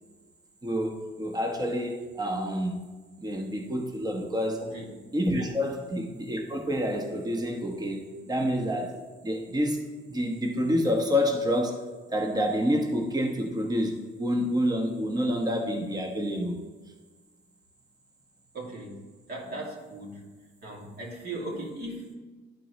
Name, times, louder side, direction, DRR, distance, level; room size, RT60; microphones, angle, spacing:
voice 1, 0.6-2.9 3.2-4.6 5.1-9.8 10.1-11.8 12.1-16.6, equal, 20° right, 2 dB, 1.2 m, -28 dB
voice 2, 4.6-4.9 5.3-5.5 18.5-19.0 19.3-20.2 20.6-22.1, right 2 dB, 55° right, -3 dB, 2.5 m, -38 dB
11.5 x 4.5 x 3.2 m, 1.3 s
cardioid pair, 90°, 20 cm